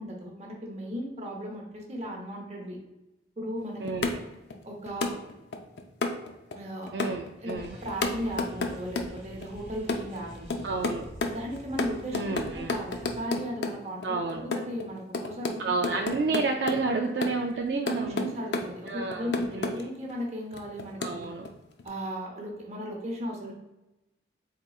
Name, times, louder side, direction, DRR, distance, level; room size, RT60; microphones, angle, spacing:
voice 1, 0.0-2.8 3.4-3.8 4.6-5.2 6.5-6.9 7.4-10.7 11.3-14.0 14.3-16.0 17.5-21.2 21.8-23.5, equal, 35° right, 0 dB, 0.8 m, -36 dB
sound 1, 3.6-3.7 3.9-4.6 4.9-6.6 6.9-9.4 9.9-10.9 11.2-13.7 14.0-15.5 15.8-16.8 17.2-17.5 17.9-18.3 18.5-19.8 20.1-20.2 20.5-21.5 21.8-21.9, left 3 dB, 65° left, 0.5 m, -30 dB
voice 2, 3.8-4.2 6.9-7.8 10.6-11.0 12.1-12.8 14.0-14.5 15.6-18.3 18.9-19.9 21.0-21.5 23.4-23.5, right 3 dB, 60° right, 2 dB, 0.3 m, -30 dB
sound 2, 7.6-13.3, equal, 10° right, 1.0 m, -47 dB
4.1 x 3.6 x 2.4 m, 0.98 s
head